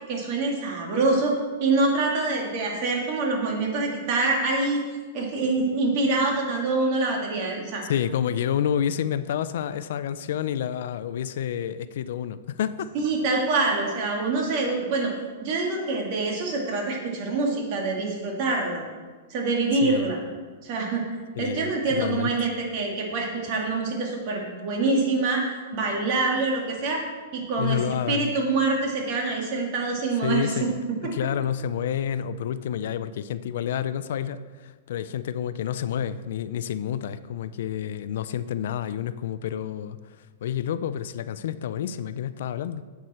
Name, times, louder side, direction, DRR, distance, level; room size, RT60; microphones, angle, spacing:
voice 1, 0.1-4.8 5.1-7.9 12.9-15.1 15.4-18.8 19.3-20.2 20.6-27.0 27.3-27.8 28.1-30.5, right 3 dB, 40° right, 0 dB, 2.3 m, -25 dB
voice 2, 7.9-12.9 19.8-20.1 21.4-22.5 27.6-28.3 30.2-42.8, left 9 dB, 65° left, 13 dB, 0.4 m, -29 dB
10.5 x 8.1 x 4.3 m, 1.4 s
supercardioid pair, 160°, 0 cm